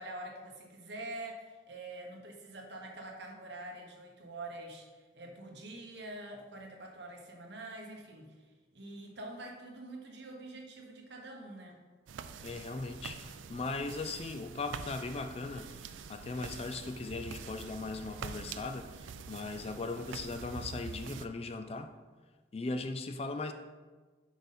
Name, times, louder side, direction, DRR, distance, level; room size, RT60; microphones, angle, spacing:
voice 1, 0.0-11.8, right 2 dB, 60° right, 1 dB, 1.3 m, -46 dB
sound 1, 12.1-21.3, right 5 dB, 80° right, 0.4 m, -45 dB
voice 2, 12.4-21.9 22.5-23.5, left 3 dB, 30° left, 8 dB, 0.3 m, -39 dB
8.0 x 5.2 x 4.2 m, 1.4 s
head